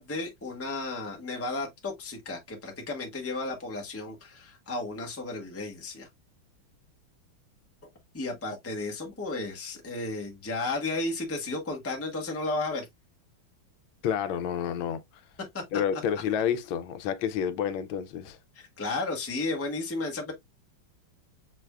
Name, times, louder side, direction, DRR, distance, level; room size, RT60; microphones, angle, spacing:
voice 1, 0.0-6.1 8.1-12.8 15.5-15.6 18.5-20.3, left 2 dB, 10° left, 0.7 m, -33 dB
voice 2, 14.0-15.0 15.7-18.4, left 8 dB, 80° left, 1.4 m, -29 dB
6.0 x 3.4 x 2.2 m
omnidirectional pair, 2.2 m